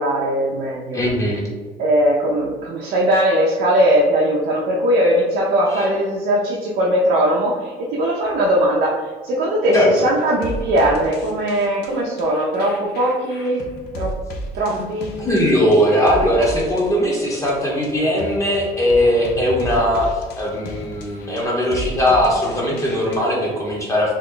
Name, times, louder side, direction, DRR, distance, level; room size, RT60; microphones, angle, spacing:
voice 1, 0.0-1.0 1.8-13.7 13.9-14.1 14.5-15.2, right 1 dB, 70° right, -3 dB, 0.6 m, -19 dB
voice 2, 0.9-1.5 5.7-5.8 9.7-9.9 14.7-14.8 15.2-24.1, equal, 20° left, -3 dB, 1.0 m, -19 dB
sound 1, 10.2-23.2, equal, 75° left, 0.5 m, -34 dB
2.9 x 2.2 x 3.7 m, 1.4 s
cardioid pair, 110°, 17 cm